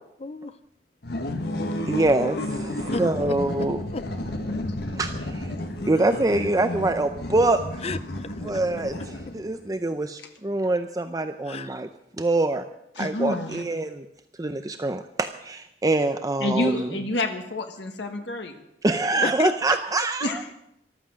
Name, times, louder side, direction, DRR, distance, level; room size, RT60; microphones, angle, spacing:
voice 1, 0.2-0.6 2.9-4.0 7.8-8.6 11.5-11.8 19.2-20.5, left 3 dB, 35° left, 14 dB, 0.6 m, -33 dB
sound 1, 1.0-9.6, left 1 dB, 65° left, 1.6 m, -32 dB
voice 2, 1.9-2.7 3.0-3.8 5.0-5.5 5.9-7.8 8.4-11.9 12.2-12.7 13.0-14.1 14.4-16.9 18.8-20.4, right 2 dB, 20° right, 8 dB, 0.6 m, -25 dB
voice 3, 4.5-4.9 12.9-13.6 16.4-18.6 20.2-20.4, left 2 dB, 90° left, 4 dB, 1.5 m, -28 dB
14.0 x 13.0 x 6.3 m, 0.83 s
head